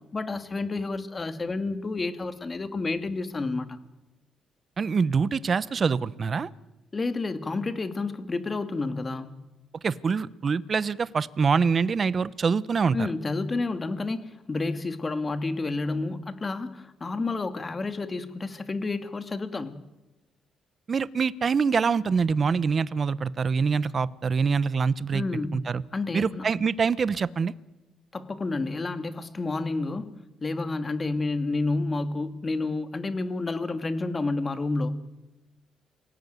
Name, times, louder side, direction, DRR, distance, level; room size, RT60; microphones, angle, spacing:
voice 1, 0.1-3.8 6.9-9.4 12.9-19.8 25.1-25.6 25.9-26.5 28.1-30.1 30.4-34.9, left 3 dB, 30° left, 10 dB, 2.3 m, -30 dB
voice 2, 4.8-6.5 9.8-13.1 20.9-25.2 25.5-25.8 26.1-27.5, right 5 dB, 40° right, 18 dB, 1.0 m, -25 dB
28.5 x 18.0 x 9.4 m, 1.1 s
cardioid pair, 90°, 0 cm